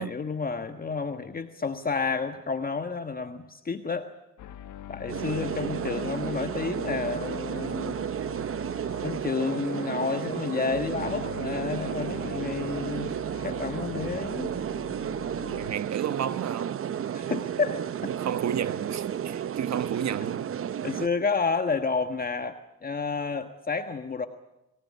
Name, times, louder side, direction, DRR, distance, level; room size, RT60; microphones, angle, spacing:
voice 1, 0.0-4.1 4.9-8.0 9.0-13.1 13.4-14.5 17.1-17.8 20.8-24.3, left 4 dB, 30° left, 1.4 m, -30 dB
sound 1, 4.4-15.8, left 10 dB, 75° left, 1.3 m, -42 dB
sound 2, 5.1-21.1, right 9 dB, 45° right, 0.8 m, -32 dB
voice 2, 15.6-16.8 18.1-20.5, right 9 dB, 60° right, 1.3 m, -32 dB
24.0 x 19.0 x 9.8 m
cardioid pair, 90°, 30 cm